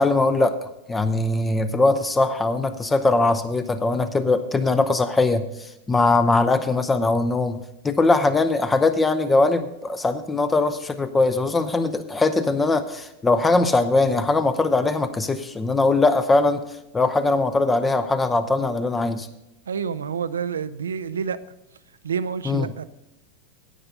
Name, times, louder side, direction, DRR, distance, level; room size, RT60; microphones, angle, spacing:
voice 1, 0.0-5.5 5.9-16.6 16.9-19.3 22.5-22.6, left 3 dB, 15° left, 0.6 m, -21 dB
voice 2, 19.7-21.4 22.0-22.8, right 6 dB, 70° right, 0.5 m, -28 dB
10.0 x 8.7 x 5.3 m
figure-of-eight pair, 90°, 0 cm